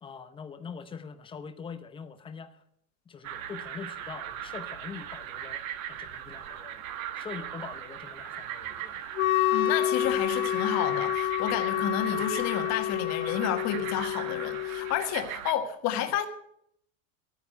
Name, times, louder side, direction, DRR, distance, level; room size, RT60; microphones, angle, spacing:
voice 1, 0.0-2.6 3.1-5.6 5.9-6.8 7.1-9.0, left 6 dB, 10° left, 0.8 m, -43 dB
sound 1, 3.2-15.5, right 10 dB, 75° right, 1.5 m, -39 dB
Wind instrument woodwind instrument, 9.2-15.0, left 12 dB, 75° left, 1.1 m, -28 dB
voice 2, 9.5-16.3, left 9 dB, 40° left, 1.6 m, -31 dB
12.5 x 9.4 x 6.7 m
supercardioid pair, 145°, 41 cm